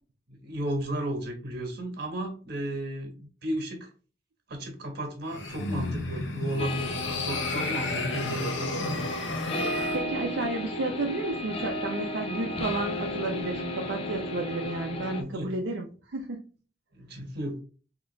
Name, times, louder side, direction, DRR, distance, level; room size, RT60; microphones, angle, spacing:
voice 1, 0.3-3.9 4.5-9.3 14.9-15.5 16.9-17.6, right 1 dB, 60° right, 3 dB, 1.4 m, -34 dB
sound 1, 5.2-10.0, left 2 dB, 90° left, 0.8 m, -33 dB
sound 2, 6.6-15.2, left 1 dB, 30° left, 0.5 m, -34 dB
voice 2, 9.9-16.4, right 2 dB, 80° right, 0 dB, 0.6 m, -32 dB
3.7 x 2.9 x 3.2 m, 0.37 s
head